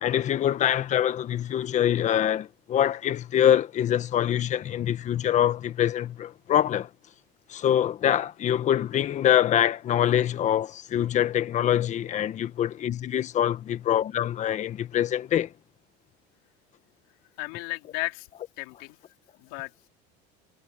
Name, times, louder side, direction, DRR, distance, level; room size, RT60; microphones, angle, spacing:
voice 1, 0.0-6.9 7.5-15.5, left 10 dB, 35° left, 1.5 m, -24 dB
voice 2, 17.4-18.3 18.6-19.0 19.4-19.9, left 24 dB, 75° left, 3.6 m, -34 dB
supercardioid pair, 130°, 20 cm